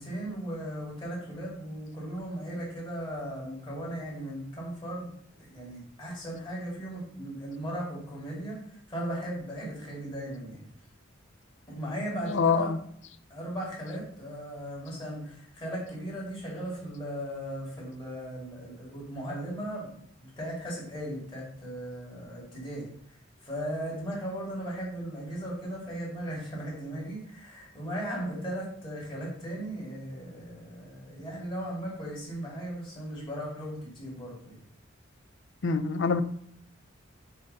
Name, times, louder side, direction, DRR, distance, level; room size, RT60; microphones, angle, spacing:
voice 1, 0.0-8.6 8.9-10.6 11.7-12.7 13.3-19.9 20.2-22.9 23.4-34.6, right 1 dB, 25° left, -4 dB, 3.0 m, -37 dB
voice 2, 12.3-12.8 35.6-36.2, left 5 dB, 65° left, 12 dB, 0.5 m, -25 dB
7.3 x 3.9 x 5.6 m, 0.65 s
head